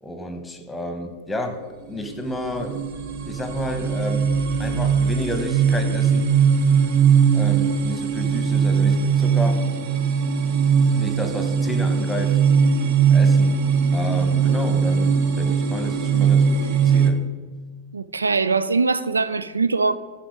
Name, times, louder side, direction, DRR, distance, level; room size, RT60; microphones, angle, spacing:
voice 1, 0.0-2.8 3.3-6.4 7.3-9.7 10.9-12.4 13.1-13.6 13.9-17.2, left 1 dB, 10° left, 1.2 m, -31 dB
sound 1, 1.8-17.1, right 6 dB, 45° right, 0.8 m, -20 dB
voice 2, 17.9-20.0, right 4 dB, 75° right, 0.3 m, -22 dB
10.0 x 5.9 x 4.9 m
figure-of-eight pair, 90°, 0 cm